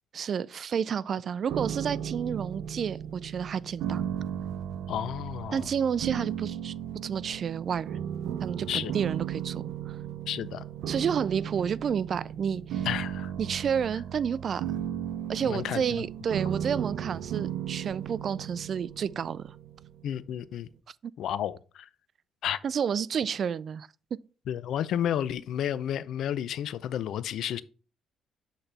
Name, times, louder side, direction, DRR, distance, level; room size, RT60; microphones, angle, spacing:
voice 1, 0.1-4.1 5.5-6.7 7.0-8.0 8.4-10.0 10.9-12.9 13.4-14.7 15.3-19.5 21.0-21.1 22.6-23.9, right 7 dB, 55° right, 0.3 m, -30 dB
sound 1, 1.5-20.5, right 9 dB, 90° right, 0.6 m, -35 dB
voice 2, 4.9-5.7 8.7-8.9 10.3-10.6 12.9-13.3 15.5-15.8 20.0-20.7 21.2-21.9 22.4-22.6 24.5-27.6, left 10 dB, 75° left, 0.4 m, -31 dB
7.9 x 4.1 x 3.3 m
cardioid pair, 90°, 0 cm